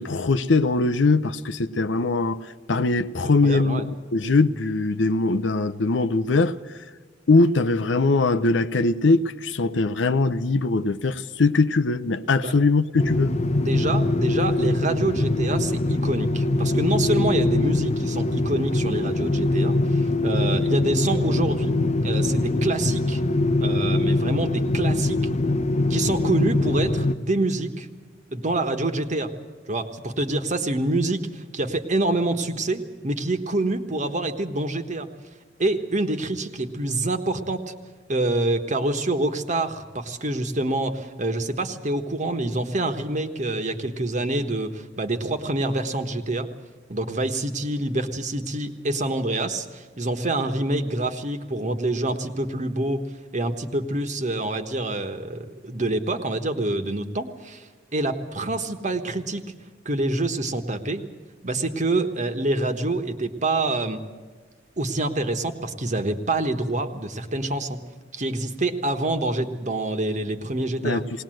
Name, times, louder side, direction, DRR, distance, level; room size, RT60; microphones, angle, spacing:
voice 1, 0.0-6.6 7.3-13.3 70.8-71.0, left 3 dB, 85° left, 0.7 m, -21 dB
voice 2, 3.4-3.9 12.4-12.5 13.6-21.8 22.0-23.2 23.6-25.2 25.9-27.9 28.3-29.3 29.7-35.1 35.6-37.6 38.1-46.5 46.9-53.0 53.3-59.4 59.8-61.0 61.4-64.0 64.8-67.8 68.1-71.0, right 2 dB, 40° right, 1.3 m, -26 dB
sound 1, 13.0-27.1, left 2 dB, 35° left, 0.5 m, -23 dB
20.0 x 19.0 x 7.7 m
head